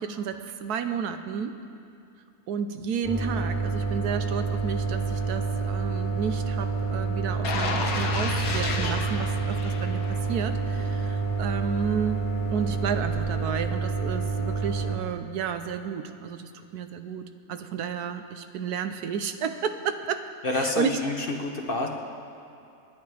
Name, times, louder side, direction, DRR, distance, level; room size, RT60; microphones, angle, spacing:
voice 1, 0.0-1.6 2.5-12.2 12.5-20.3 20.5-21.0, right 7 dB, 80° right, 8 dB, 1.3 m, -32 dB
sound 1, 3.0-14.9, right 4 dB, 15° left, 2.3 m, -28 dB
Alien Drain, 7.4-10.4 10.8-11.0, left 3 dB, 65° left, 1.5 m, -31 dB
voice 2, 20.4-21.9, left 2 dB, 40° left, 2 dB, 1.0 m, -28 dB
29.5 x 10.5 x 3.4 m, 2.6 s
omnidirectional pair, 1.6 m